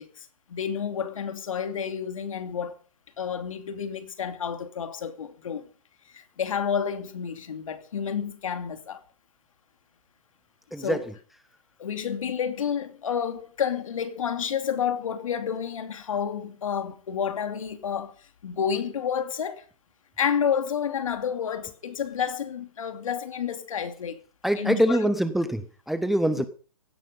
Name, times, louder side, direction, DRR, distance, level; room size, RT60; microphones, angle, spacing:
voice 1, 0.0-2.8 3.2-5.6 6.1-9.0 10.8-11.0 11.8-18.1 18.4-19.6 20.2-24.2 24.6-25.1, left 7 dB, 60° left, 2.7 m, -30 dB
voice 2, 10.7-11.0 24.4-26.5, right 1 dB, ahead, 0.6 m, -24 dB
16.0 x 11.0 x 5.4 m
hypercardioid pair, 145°, 19 cm